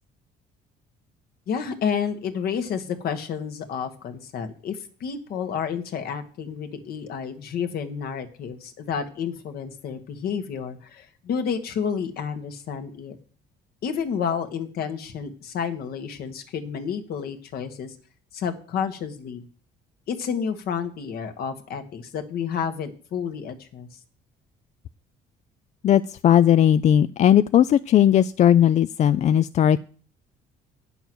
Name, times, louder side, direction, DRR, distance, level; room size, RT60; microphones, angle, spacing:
voice 1, 1.5-13.1 13.8-17.9 18.3-19.4 20.1-24.0, left 7 dB, 65° left, 8 dB, 1.6 m, -30 dB
voice 2, 25.8-29.8, left 10 dB, 45° left, 15 dB, 0.4 m, -17 dB
9.3 x 6.9 x 6.2 m, 0.42 s
cardioid pair, 110°, 17 cm